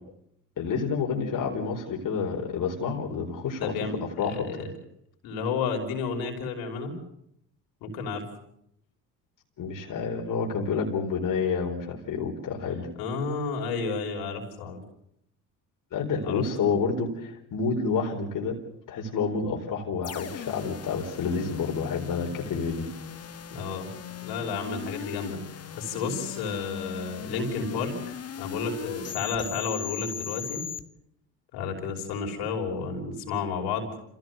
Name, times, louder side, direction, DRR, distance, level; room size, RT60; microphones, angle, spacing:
voice 1, 0.6-3.7 4.2-4.5 9.6-12.9 15.9-18.6 18.9-22.9, left 5 dB, 60° left, 0 dB, 4.4 m, -29 dB
voice 2, 3.6-4.7 5.2-6.9 7.8-8.2 13.0-14.8 16.2-16.4 23.5-23.9 24.2-25.4 25.7-28.0 28.4-30.6 31.5-33.9, left 5 dB, 80° left, 2 dB, 5.5 m, -31 dB
sound 1, 20.0-30.8, left 8 dB, 40° left, 1.6 m, -38 dB
27.5 x 16.0 x 8.0 m, 0.76 s
supercardioid pair, 75°, 37 cm